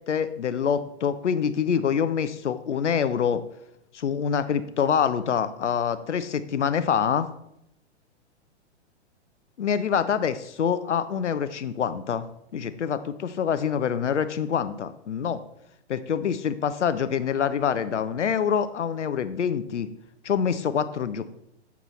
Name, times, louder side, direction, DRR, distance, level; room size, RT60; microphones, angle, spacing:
voice 1, 0.1-3.4 3.9-7.3 9.6-12.3 12.5-15.4 15.9-19.9 20.2-21.2, left 7 dB, 90° left, 13 dB, 0.5 m, -25 dB
6.9 x 5.9 x 3.0 m, 0.80 s
figure-of-eight pair, 115°, 35 cm